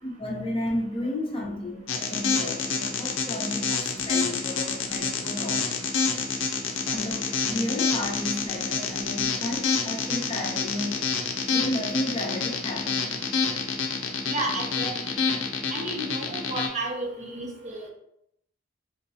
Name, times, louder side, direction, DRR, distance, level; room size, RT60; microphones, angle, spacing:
voice 1, 0.0-5.7 6.9-11.1 11.5-13.1, left 1 dB, 30° left, -3 dB, 0.7 m, -32 dB
sound 1, 1.9-16.7, left 5 dB, 85° left, 0.5 m, -27 dB
voice 2, 14.3-15.1 15.7-17.9, right 2 dB, 35° right, 0 dB, 0.5 m, -32 dB
3.8 x 2.2 x 2.7 m, 0.76 s
head